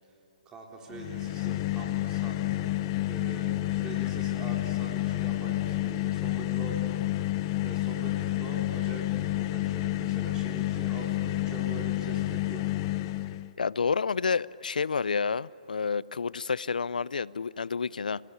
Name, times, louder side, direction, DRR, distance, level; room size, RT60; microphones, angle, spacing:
voice 1, 0.5-2.7 3.1-6.8 7.1-7.2 7.6-12.6, right 3 dB, 15° right, 0 dB, 3.7 m, -43 dB
sound 1, 0.9-13.5, left 15 dB, 35° left, 0.6 m, -30 dB
voice 2, 13.6-18.2, left 5 dB, 80° left, 22 dB, 0.5 m, -29 dB
26.0 x 18.5 x 9.8 m, 2.9 s
hypercardioid pair, 140°, 4 cm